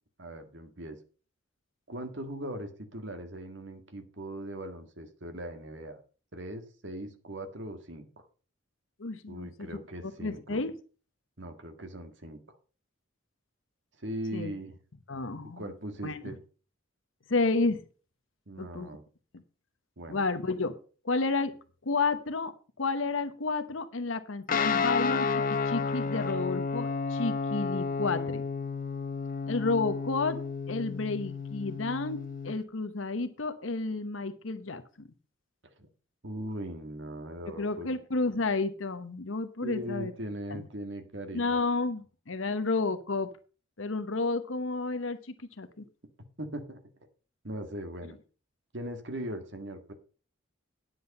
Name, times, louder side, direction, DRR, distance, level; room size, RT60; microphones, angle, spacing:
voice 1, 0.2-1.0 1.9-6.0 6.3-8.3 9.3-10.6 11.4-12.6 14.0-14.7 15.6-16.4 18.5-19.0 20.0-20.2 35.8-35.9 36.2-37.9 39.6-41.6 46.4-46.8 47.4-48.2 48.7-49.9, right 1 dB, 60° right, 7 dB, 1.8 m, -39 dB
voice 2, 9.0-9.7 10.0-10.8 14.3-14.5 15.1-15.7 16.0-16.3 17.3-17.8 18.6-18.9 19.3-19.4 20.1-20.8 21.0-21.5 21.8-22.5 22.8-28.5 29.5-35.1 37.5-40.1 40.5-40.7 41.3-43.3 43.8-45.9, left 3 dB, 75° left, 10 dB, 1.0 m, -31 dB
Guitar, 24.5-32.5, left 5 dB, 40° left, 0.7 m, -31 dB
9.7 x 7.8 x 5.4 m, 0.38 s
head